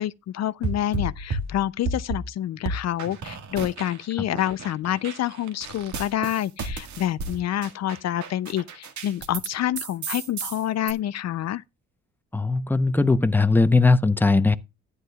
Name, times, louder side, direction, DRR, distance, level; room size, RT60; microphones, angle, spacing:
voice 1, 0.0-11.6, left 12 dB, 60° left, 0.5 m, -27 dB
sound 1, 0.6-2.3 2.7-4.1 4.3-9.5 9.8-10.9, right 3 dB, 70° right, 1.9 m, -32 dB
voice 2, 12.3-14.6, left 3 dB, 5° left, 0.7 m, -19 dB
12.0 x 9.8 x 2.3 m
cardioid pair, 90°, 30 cm